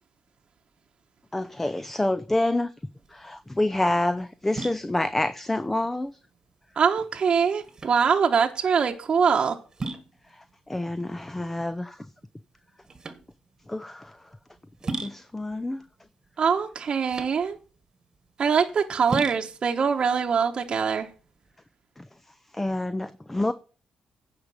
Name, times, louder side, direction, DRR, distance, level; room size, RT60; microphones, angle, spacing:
voice 1, 1.3-2.7 3.1-6.1 10.4-12.0 13.7-14.2 15.0-15.8 22.0-22.1 22.5-23.5, left 1 dB, 10° left, 0.5 m, -27 dB
sound 1, 3.0-21.5, right 3 dB, 35° right, 1.5 m, -39 dB
voice 2, 6.8-9.6 16.4-17.6 18.4-21.1, right 6 dB, 50° right, 1.0 m, -23 dB
9.6 x 5.1 x 7.1 m
cardioid pair, 85°, 2 cm